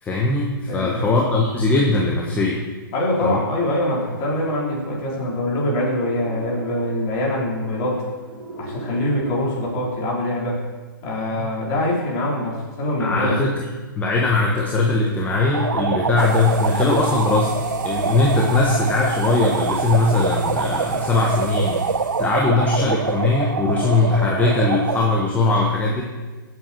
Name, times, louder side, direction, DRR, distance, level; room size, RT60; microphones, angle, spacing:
voice 1, 0.0-2.6 3.2-3.4 11.3-11.5 13.0-13.7 14.0-21.9 22.2-26.0, left 3 dB, 15° left, -2 dB, 1.4 m, -20 dB
voice 2, 0.7-1.1 2.9-8.0 8.6-10.6 11.0-13.4, left 1 dB, 30° left, -4 dB, 4.6 m, -24 dB
sound 1, 5.9-10.6, right 1 dB, 20° right, 4.9 m, -39 dB
sound 2, 15.3-25.3, right 5 dB, 80° right, 0.6 m, -25 dB
sound 3, 16.2-22.5, right 3 dB, 55° right, 2.2 m, -38 dB
16.5 x 8.1 x 4.6 m, 1.3 s
figure-of-eight pair, 125°, 12 cm